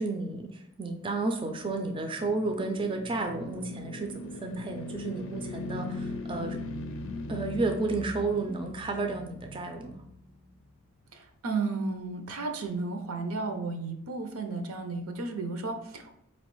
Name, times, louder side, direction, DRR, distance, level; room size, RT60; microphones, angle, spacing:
voice 1, 0.0-6.6 7.3-10.0, right 3 dB, 25° right, 4 dB, 0.3 m, -32 dB
sound 1, 1.4-10.7, left 1 dB, 60° left, 0.4 m, -40 dB
voice 2, 11.1-16.2, right 3 dB, 75° right, 5 dB, 0.6 m, -33 dB
4.4 x 3.1 x 3.0 m, 0.74 s
head